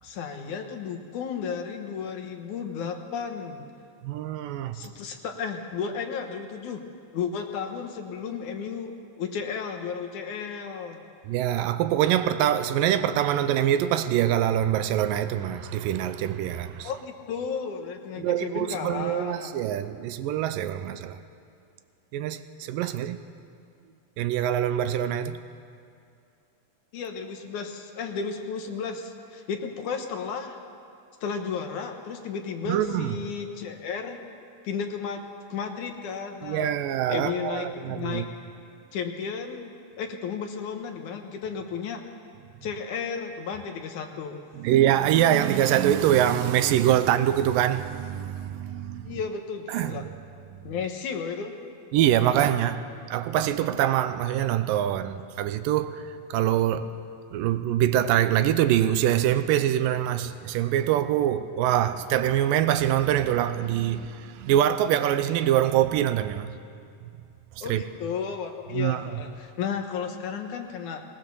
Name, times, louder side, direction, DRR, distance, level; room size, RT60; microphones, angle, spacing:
voice 1, 0.0-3.6 4.7-6.8 7.1-11.0 16.8-19.5 26.9-30.6 31.2-34.2 34.6-35.2 35.5-36.7 37.1-38.3 38.9-39.7 40.0-42.0 42.6-44.4 49.0-50.1 50.6-51.6 67.6-71.0, left 6 dB, 65° left, 2.4 m, -33 dB
voice 2, 4.0-4.8 11.3-16.9 18.2-21.2 22.1-23.2 24.2-25.4 32.7-33.2 36.4-38.3 44.6-49.2 49.7-50.0 51.9-56.9 57.3-66.5 67.6-67.8 68.7-69.0, right 11 dB, 85° right, 2.3 m, -24 dB
19.5 x 19.0 x 7.0 m
omnidirectional pair, 4.0 m